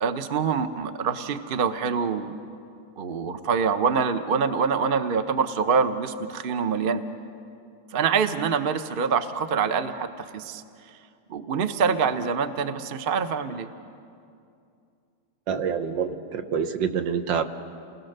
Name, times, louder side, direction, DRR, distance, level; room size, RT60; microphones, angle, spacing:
voice 1, 0.0-2.3 3.0-7.0 7.9-10.6 11.3-13.7, right 6 dB, 50° right, 9 dB, 0.7 m, -25 dB
voice 2, 15.5-17.4, right 7 dB, 70° right, 8 dB, 1.7 m, -26 dB
29.0 x 20.0 x 6.6 m, 2.5 s
omnidirectional pair, 2.1 m